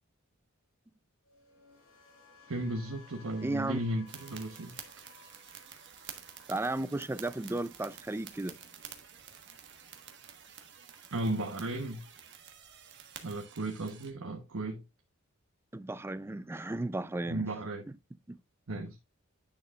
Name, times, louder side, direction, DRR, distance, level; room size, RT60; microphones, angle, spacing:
sound 1, 1.2-9.3 9.6-10.0, left 4 dB, 85° left, 6.0 m, -59 dB
voice 1, 2.5-4.7 11.1-12.0 13.2-14.8 17.3-17.9 18.7-19.0, right 1 dB, 80° right, 1.1 m, -35 dB
voice 2, 3.4-3.8 6.5-8.6 15.7-17.5 18.3-18.4, right 2 dB, 10° right, 0.4 m, -34 dB
sound 2, 4.1-14.1, right 8 dB, 60° right, 1.4 m, -50 dB
10.0 x 6.5 x 2.4 m
head